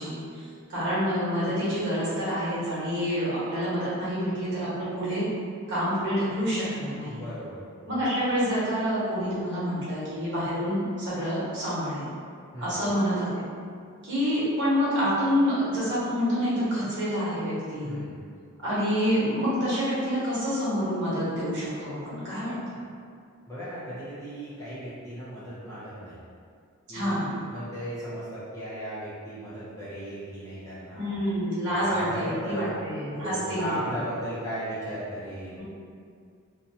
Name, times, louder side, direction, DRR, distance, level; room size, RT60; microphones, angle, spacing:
voice 1, 0.0-5.3 5.7-7.2 7.9-12.1 12.6-13.4 14.0-18.0 18.6-22.8 26.9-27.4 30.9-34.0 35.6-35.7, equal, 55° right, -10 dB, 1.1 m, -27 dB
voice 2, 7.1-8.0 12.5-12.8 17.8-18.3 23.5-26.2 26.9-31.1 31.7-32.7 33.1-35.6, equal, 15° left, -11 dB, 0.6 m, -36 dB
2.6 x 2.2 x 2.7 m, 2.3 s
head